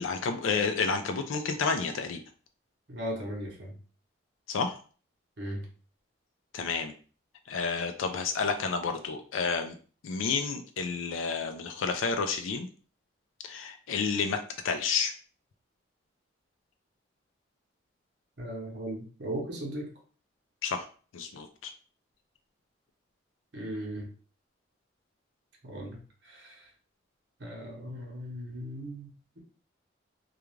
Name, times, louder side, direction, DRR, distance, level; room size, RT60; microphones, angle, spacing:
voice 1, 0.0-2.2 4.5-4.8 6.5-6.9 7.5-9.7 10.0-12.7 13.4-15.1 20.6-20.9 21.1-21.7, left 5 dB, 85° left, 6 dB, 0.4 m, -30 dB
voice 2, 2.9-3.7 5.4-5.6 18.4-19.9 23.5-24.1 25.6-26.7 27.4-29.4, right 1 dB, 60° right, -1 dB, 0.8 m, -38 dB
2.4 x 2.3 x 3.1 m, 0.39 s
head